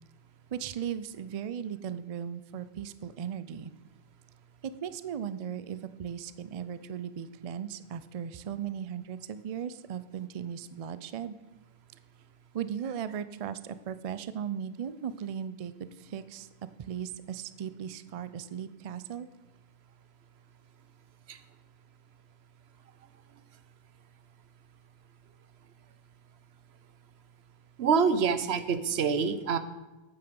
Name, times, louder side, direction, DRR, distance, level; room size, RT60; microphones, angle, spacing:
voice 1, 0.5-3.7 4.6-11.4 12.5-16.5 16.9-19.3, right 8 dB, 50° right, 14 dB, 0.5 m, -37 dB
voice 2, 27.8-29.6, right 6 dB, 85° right, 12 dB, 1.0 m, -26 dB
8.8 x 8.7 x 5.2 m, 1.1 s
omnidirectional pair, 1.1 m